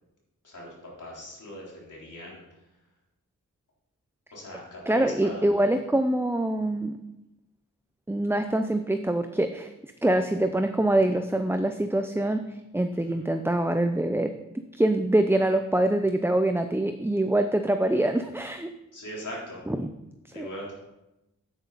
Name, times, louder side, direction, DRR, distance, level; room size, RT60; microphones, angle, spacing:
voice 1, 0.4-2.4 4.3-5.4 13.1-13.2 18.9-19.6 20.3-20.7, equal, 70° left, -4 dB, 4.0 m, -40 dB
voice 2, 4.9-7.0 8.1-9.7 10.0-14.3 14.7-18.7 19.7-19.9 20.4-20.5, right 1 dB, 5° right, 7 dB, 0.6 m, -24 dB
9.3 x 9.0 x 4.1 m, 0.94 s
cardioid pair, 50°, 31 cm